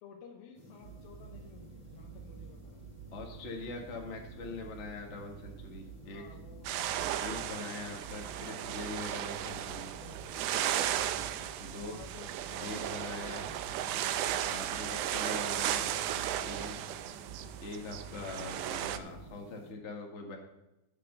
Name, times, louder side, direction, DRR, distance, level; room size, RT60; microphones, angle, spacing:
voice 1, 0.0-2.8 6.0-7.6 9.1-9.3 9.9-10.5 11.7-13.9 16.6-16.9, left 7 dB, 85° left, 1 dB, 2.8 m, -54 dB
sound 1, 0.5-19.7, left 1 dB, 15° right, 2.6 m, -54 dB
sound 2, 0.8-19.2, right 7 dB, 65° right, 2.6 m, -50 dB
voice 2, 3.1-6.2 7.2-9.9 11.6-12.0 12.6-13.5 14.4-15.9 16.4-16.7 17.6-20.4, left 3 dB, 60° left, 1 dB, 0.7 m, -43 dB
sound 3, 6.6-19.0, right 11 dB, 85° right, 1.8 m, -35 dB
14.5 x 6.0 x 5.5 m, 0.93 s
omnidirectional pair, 4.1 m